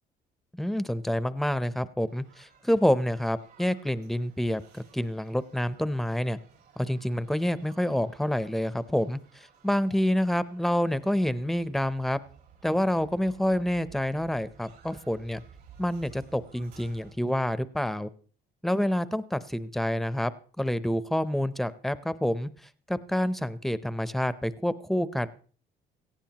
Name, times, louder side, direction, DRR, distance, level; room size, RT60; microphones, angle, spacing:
voice 1, 0.5-6.4 6.8-9.2 9.6-12.2 12.6-15.4 15.8-18.1 18.6-20.3 20.6-22.5 22.9-25.3, equal, ahead, 15 dB, 0.6 m, -28 dB
sound 1, 2.1-17.1, right 7 dB, 75° right, 5.1 m, -55 dB
18.0 x 14.5 x 2.9 m, 0.43 s
cardioid pair, 110°, 17 cm